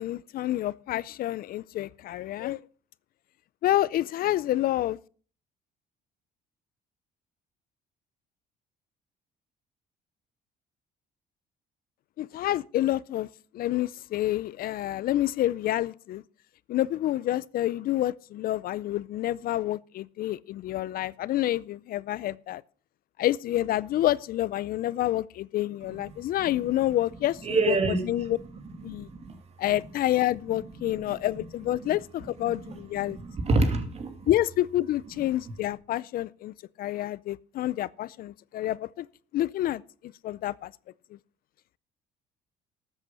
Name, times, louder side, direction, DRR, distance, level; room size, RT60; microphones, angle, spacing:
voice 1, 0.0-2.6 3.6-5.0 12.2-13.3 13.5-16.2 16.7-22.6 23.2-27.8 28.1-28.4 28.8-29.1 29.6-33.2 34.3-39.1 39.3-40.7, left 14 dB, 60° left, 0.5 m, -28 dB
voice 2, 27.4-29.4 30.5-31.5 31.8-31.9 32.5-34.3, right 3 dB, 40° right, 2.6 m, -30 dB
13.0 x 8.1 x 5.5 m
cardioid pair, 110°, 17 cm